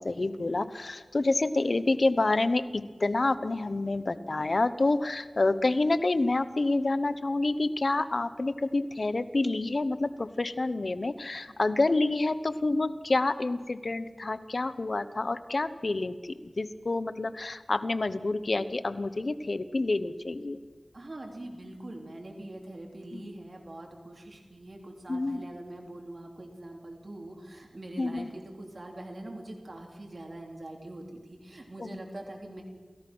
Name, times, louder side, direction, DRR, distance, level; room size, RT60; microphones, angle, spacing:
voice 1, 0.0-20.6 23.1-23.3 25.1-25.4 28.0-28.3 31.8-32.0, left 2 dB, 65° left, 13 dB, 0.9 m, -28 dB
voice 2, 11.5-11.8 20.9-32.6, right 1 dB, 60° right, 1 dB, 3.5 m, -43 dB
28.5 x 15.5 x 6.2 m, 1.5 s
wide cardioid pair, 45°, 0 cm